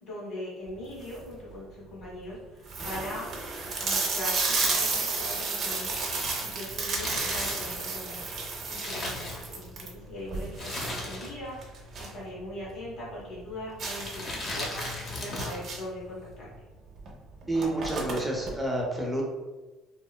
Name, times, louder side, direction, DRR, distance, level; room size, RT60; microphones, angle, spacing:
voice 1, 0.0-3.3 3.8-5.9 6.4-8.3 8.6-14.2 14.5-14.8 15.2-16.5, left 1 dB, 70° left, -7 dB, 1.0 m, -40 dB
sound 1, 0.8-1.3 1.9-2.0 2.3-2.4 2.7-12.2 12.5-12.6 13.0-13.1 13.8-16.0 17.0-17.1 17.4-18.5, right 4 dB, 50° right, 0.6 m, -32 dB
Crumpling crinkling, 5.9-9.9 10.5-11.6 11.8-11.9 12.7-13.1 13.8-15.7 15.9-16.0, left 2 dB, 40° left, 0.6 m, -37 dB
voice 2, 17.5-19.2, right 1 dB, 5° right, -2 dB, 0.6 m, -29 dB
2.8 x 2.1 x 2.2 m, 1.2 s
cardioid pair, 105°, 0 cm